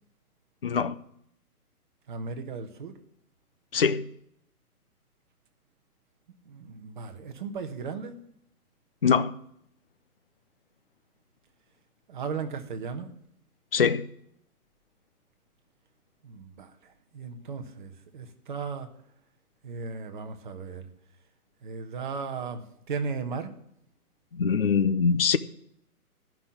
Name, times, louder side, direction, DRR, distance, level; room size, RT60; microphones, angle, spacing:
voice 1, 0.6-1.0 3.7-4.1 9.0-9.3 13.7-14.1 24.3-25.4, left 6 dB, 40° left, 0.5 m, -23 dB
voice 2, 2.1-2.9 6.4-8.2 12.1-13.1 16.2-18.9 19.6-20.9 21.6-23.6, right 5 dB, 35° right, 1.2 m, -36 dB
12.0 x 5.9 x 8.4 m
hypercardioid pair, 165°, 45 cm